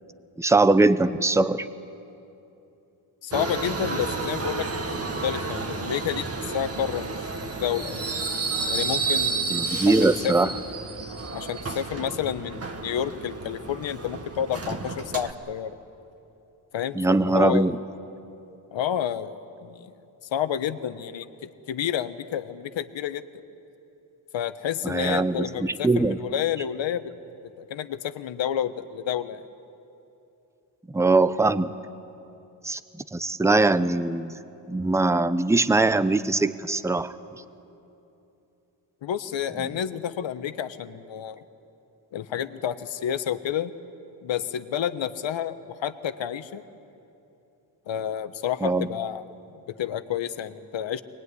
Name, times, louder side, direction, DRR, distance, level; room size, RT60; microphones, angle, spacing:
voice 1, 0.4-1.7 9.5-10.5 16.9-17.8 24.8-26.2 30.9-31.7 32.6-32.8 33.1-34.4 34.7-37.1 48.6-48.9, right 2 dB, 5° right, 13 dB, 0.7 m, -21 dB
voice 2, 3.2-4.7 5.0-8.1 8.7-10.6 11.3-15.7 16.7-17.7 18.7-19.9 20.3-21.3 21.7-23.2 24.3-27.1 27.7-29.4 39.0-41.4 42.1-43.7 44.2-46.6 47.9-49.2 49.5-51.0, left 9 dB, 65° left, 11 dB, 1.2 m, -30 dB
Subway metro underground, 3.3-15.3, right 4 dB, 30° right, 1.6 m, -31 dB
23.0 x 20.0 x 9.8 m, 2.8 s
cardioid pair, 85°, 48 cm